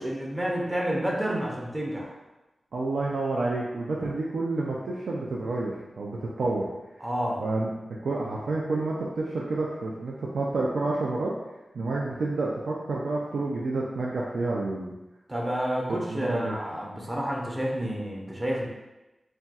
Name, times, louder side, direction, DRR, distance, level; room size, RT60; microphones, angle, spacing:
voice 1, 0.0-2.2 7.0-7.4 15.3-18.7, equal, 20° right, -2 dB, 0.5 m, -29 dB
voice 2, 2.7-6.6 7.4-7.7 8.0-11.3 11.7-14.9 15.9-16.6, right 2 dB, 85° right, -3 dB, 0.3 m, -29 dB
4.0 x 2.3 x 2.3 m, 1.0 s
wide cardioid pair, 115°, 0 cm